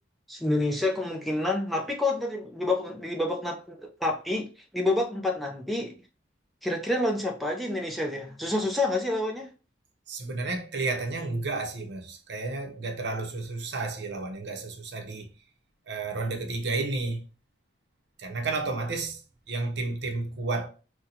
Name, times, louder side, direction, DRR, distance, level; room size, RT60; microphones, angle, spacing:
voice 1, 0.3-4.5 4.7-5.9 6.6-9.5, left 2 dB, ahead, 0.4 m, -28 dB
voice 2, 10.1-15.3 15.9-17.2 18.2-19.2 19.5-20.7, right 3 dB, 60° right, 0.7 m, -31 dB
4.1 x 2.2 x 2.7 m
head